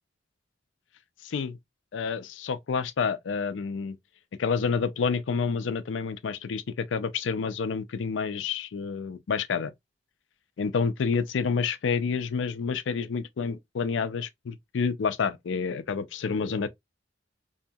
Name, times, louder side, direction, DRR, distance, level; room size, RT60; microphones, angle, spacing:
voice 1, 1.2-1.6 1.9-4.0 4.4-9.7 10.6-16.7, left 5 dB, 80° left, 0.4 m, -29 dB
2.7 x 2.7 x 2.2 m
head